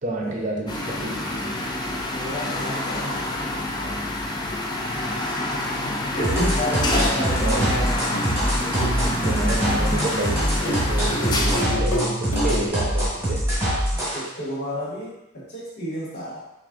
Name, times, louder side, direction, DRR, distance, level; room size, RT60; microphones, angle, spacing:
voice 1, 0.0-1.5 6.9-7.7 9.2-13.5, right 2 dB, 40° right, -1 dB, 0.7 m, -30 dB
sound 1, 0.7-11.6, left 1 dB, 20° left, 0.4 m, -27 dB
voice 2, 2.1-3.4 3.7-4.0 6.1-8.1 13.7-16.4, equal, 50° left, -5 dB, 1.2 m, -31 dB
sound 2, 6.2-14.2, equal, 10° right, 1.3 m, -24 dB
sound 3, 7.5-9.9 10.6-12.7, right 1 dB, 70° left, 1.5 m, -29 dB
5.9 x 2.5 x 2.5 m, 0.94 s
head